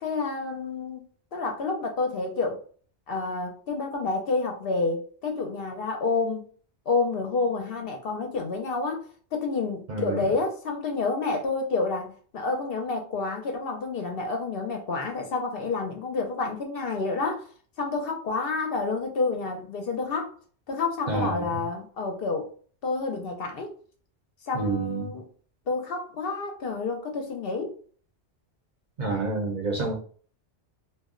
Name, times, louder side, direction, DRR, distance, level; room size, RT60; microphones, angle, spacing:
voice 1, 0.0-1.0 1.3-2.6 3.1-6.4 6.9-9.1 9.3-17.5 17.8-20.3 20.7-22.5 22.8-23.8 24.5-25.2 25.7-27.7, left 3 dB, 60° left, 0.7 m, -29 dB
voice 2, 9.9-10.2 21.1-21.5 24.5-25.1 29.0-29.9, right 3 dB, 50° right, 0.6 m, -28 dB
2.3 x 2.1 x 3.6 m
omnidirectional pair, 1.2 m